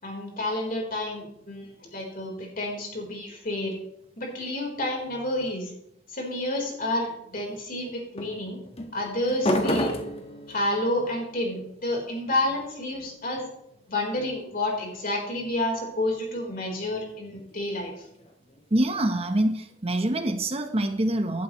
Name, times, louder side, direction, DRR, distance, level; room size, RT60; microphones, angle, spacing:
voice 1, 0.0-3.8 4.2-5.7 6.1-8.6 8.9-9.9 10.5-13.5 13.9-17.9, left 1 dB, 50° left, 0 dB, 4.0 m, -30 dB
sound 1, 1.1-3.0 6.5-7.1 8.2-14.9 16.7-19.7, left 1 dB, 35° left, 1.4 m, -35 dB
voice 2, 18.7-21.4, right 1 dB, 35° right, 7 dB, 0.9 m, -25 dB
14.5 x 12.0 x 3.1 m, 0.77 s
head